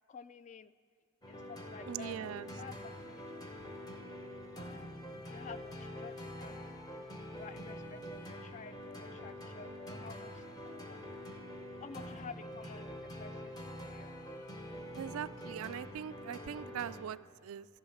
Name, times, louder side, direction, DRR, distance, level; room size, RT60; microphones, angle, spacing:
voice 1, 0.1-0.7 1.3-4.2 5.3-6.8 7.1-11.5 11.8-14.2, left 5 dB, 35° left, 15 dB, 0.3 m, -52 dB
sound 1, 1.2-17.0, equal, 20° left, 0.9 m, -46 dB
voice 2, 1.9-2.5 15.0-17.7, right 9 dB, 75° right, 17 dB, 0.3 m, -41 dB
14.0 x 11.0 x 5.6 m, 2.4 s
head